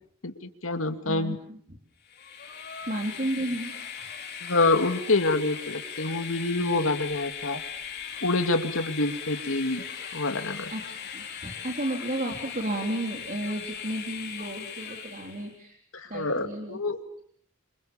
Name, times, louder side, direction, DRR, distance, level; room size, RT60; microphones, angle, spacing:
voice 1, 0.2-1.4 4.4-7.6 8.2-9.8 10.1-10.7 15.9-17.0, left 2 dB, 85° left, 8 dB, 2.4 m, -27 dB
voice 2, 1.0-1.6 2.8-3.7 10.7-15.8 16.1-16.8, right 1 dB, 40° right, 2 dB, 3.7 m, -33 dB
Train, 2.0-15.5, left 7 dB, 55° left, 5.0 m, -39 dB
28.5 x 27.0 x 7.1 m, 0.64 s
head